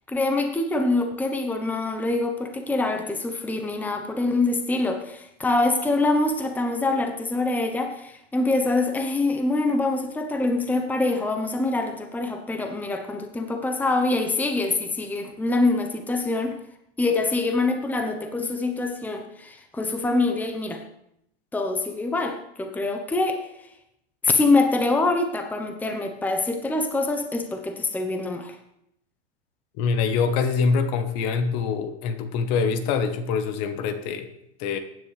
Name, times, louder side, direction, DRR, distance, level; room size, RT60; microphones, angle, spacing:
voice 1, 0.1-16.5 17.0-20.8 21.5-23.5 24.2-28.6, left 2 dB, 5° left, 5 dB, 1.0 m, -25 dB
voice 2, 29.8-34.3 34.6-34.8, left 5 dB, 50° left, 8 dB, 1.5 m, -24 dB
15.5 x 10.0 x 3.4 m, 0.77 s
hypercardioid pair, 120°, 34 cm